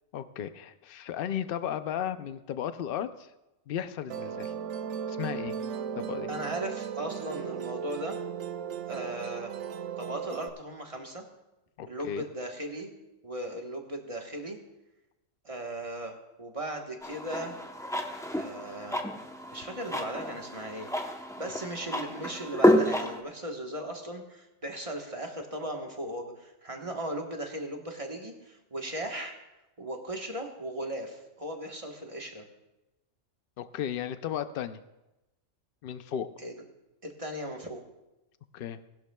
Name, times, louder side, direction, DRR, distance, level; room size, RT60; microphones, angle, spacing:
voice 1, 0.1-3.3 3.7-4.5 5.1-5.6 6.0-6.3 11.8-12.2 33.6-34.8 35.8-36.3 38.5-38.8, left 9 dB, 55° left, 12 dB, 0.7 m, -35 dB
Musical instrument, 4.1-10.5, right 8 dB, 70° right, 0.9 m, -36 dB
voice 2, 6.3-8.2 8.9-9.5 10.0-11.2 11.9-12.9 13.2-14.6 15.4-17.5 18.3-19.1 19.5-29.3 29.8-32.5 36.4-36.5 37.0-37.8, right 1 dB, 25° right, 2 dB, 1.3 m, -37 dB
sound 1, 17.0-23.2, equal, 5° left, 0.6 m, -29 dB
19.0 x 11.5 x 2.3 m, 0.97 s
omnidirectional pair, 1.4 m